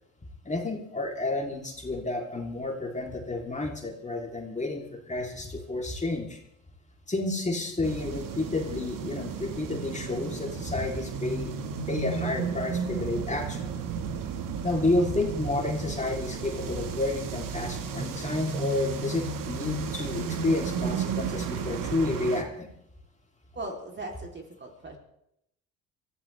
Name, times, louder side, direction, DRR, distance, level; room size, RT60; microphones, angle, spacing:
voice 1, 0.5-6.4 7.1-11.6 11.9-13.7 14.6-22.7, left 2 dB, 20° left, 0 dB, 3.4 m, -30 dB
sound 1, 7.8-22.4, right 6 dB, 60° right, 1.9 m, -33 dB
voice 2, 23.6-25.0, right 2 dB, 30° right, 2 dB, 3.6 m, -38 dB
24.0 x 15.0 x 3.5 m, 0.78 s
supercardioid pair, 70°, 36 cm